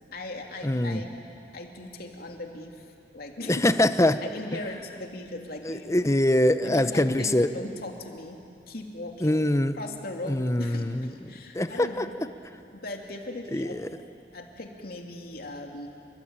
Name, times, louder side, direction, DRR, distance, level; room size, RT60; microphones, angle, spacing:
voice 1, 0.1-1.1 1.5-3.7 4.2-5.9 6.6-8.4 8.7-9.4 9.7-12.1 12.7-13.9 14.3-15.9, left 2 dB, 60° left, 2 dB, 3.0 m, -38 dB
voice 2, 0.6-1.0 3.5-4.2 5.6-7.5 9.2-9.8 10.3-11.1 11.5-12.1 13.5-13.9, left 1 dB, 15° left, 11 dB, 0.8 m, -23 dB
29.5 x 21.5 x 8.9 m, 2.6 s
head